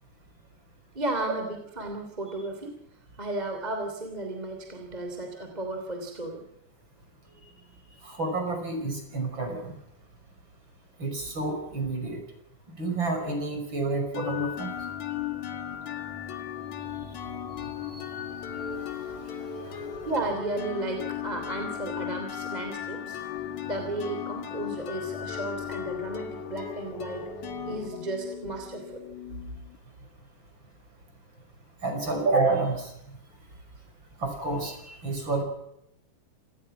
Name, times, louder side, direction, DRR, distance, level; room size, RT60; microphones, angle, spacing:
voice 1, 0.9-2.7 3.2-6.5 20.0-23.2 23.6-27.3 27.7-29.1 32.1-32.2, right 2 dB, 15° right, 3 dB, 2.8 m, -34 dB
voice 2, 8.0-9.8 11.0-12.2 12.7-14.7 17.9-18.1 19.1-19.8 31.8-32.9 34.2-35.4, right 3 dB, 35° right, 4 dB, 6.2 m, -29 dB
sound 1, 14.1-29.8, left 9 dB, 65° left, 3.1 m, -36 dB
27.0 x 19.5 x 6.0 m, 0.80 s
omnidirectional pair, 3.6 m